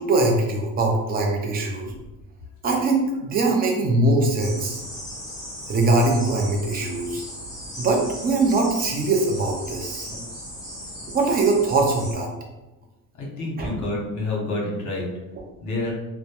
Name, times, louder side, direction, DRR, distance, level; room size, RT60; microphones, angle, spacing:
voice 1, 0.0-1.9 2.6-4.8 5.7-7.2 7.8-10.2 11.1-12.3 13.6-13.8, right 2 dB, 25° right, 1 dB, 0.4 m, -22 dB
sound 1, 4.4-12.1, equal, 10° left, 0.7 m, -37 dB
voice 2, 13.2-15.1 15.6-15.9, left 2 dB, 55° left, -3 dB, 0.8 m, -28 dB
2.2 x 2.0 x 2.8 m, 1.1 s
cardioid pair, 125°, 36 cm